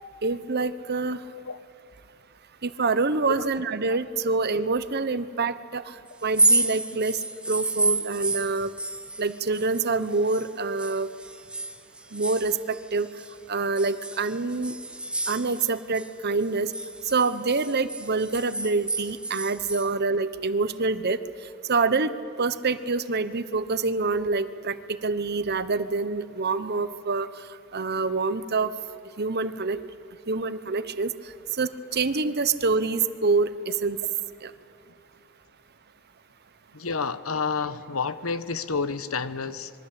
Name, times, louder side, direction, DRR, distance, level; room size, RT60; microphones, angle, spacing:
voice 1, 0.2-1.2 2.6-5.8 6.2-7.2 7.5-8.7 9.2-11.1 12.1-13.1 13.5-14.7 15.3-16.7 17.1-21.2 21.7-22.1 22.4-24.8 25.0-27.3 27.7-28.7 29.2-29.8 30.3-31.1 31.6-34.0 34.4-34.5, right 3 dB, 50° right, 13 dB, 1.0 m, -26 dB
sound 1, 6.2-10.5 10.8-13.3 13.8-16.1 16.4-19.9, right 2 dB, 5° right, 1.0 m, -29 dB
voice 2, 36.7-39.7, left 5 dB, 80° left, 13 dB, 1.1 m, -29 dB
26.0 x 22.5 x 8.4 m, 2.4 s
head